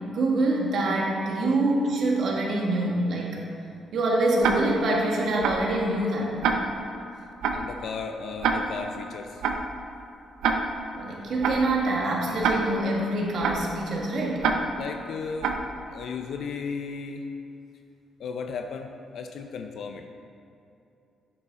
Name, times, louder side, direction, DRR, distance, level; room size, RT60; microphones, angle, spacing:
voice 1, 0.1-3.4 3.9-6.4 11.0-14.5, right 2 dB, 65° right, -2 dB, 1.9 m, -25 dB
Tick-tock, 4.4-4.9 5.4-5.8 6.4-6.9 7.4-7.8 8.4-8.9 9.4-9.8 10.4-10.9 11.4-11.8 12.4-12.9 13.4-13.8 14.4-14.9 15.4-15.8, right 5 dB, 85° right, 0.7 m, -26 dB
voice 2, 7.5-9.4 14.8-15.5 15.9-17.3 18.2-20.1, left 5 dB, 70° left, 5 dB, 0.5 m, -35 dB
8.9 x 8.2 x 3.7 m, 2.7 s
cardioid pair, 70°, 0 cm